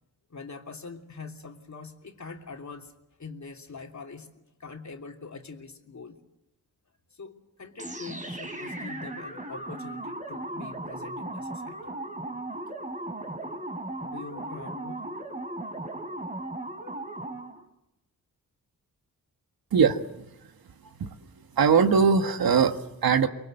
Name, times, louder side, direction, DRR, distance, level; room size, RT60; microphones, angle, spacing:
voice 1, 0.3-2.9 3.2-6.2 7.1-11.8 14.0-15.0, left 4 dB, 50° left, 3 dB, 3.1 m, -43 dB
sound 1, 7.8-17.6, right 2 dB, 20° right, 3.5 m, -37 dB
voice 2, 19.7-20.3 21.0-21.1 21.5-23.3, right 6 dB, 75° right, 7 dB, 1.6 m, -21 dB
24.5 x 22.5 x 7.8 m, 0.92 s
cardioid pair, 65°, 36 cm